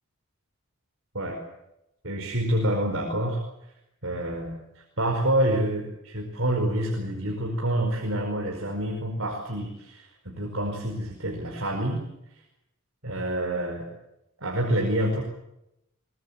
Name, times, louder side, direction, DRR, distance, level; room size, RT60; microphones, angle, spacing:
voice 1, 2.0-3.4 4.0-12.1 13.0-13.9 14.4-15.2, right 1 dB, 65° right, 1 dB, 5.0 m, -27 dB
23.0 x 21.0 x 8.4 m, 0.85 s
head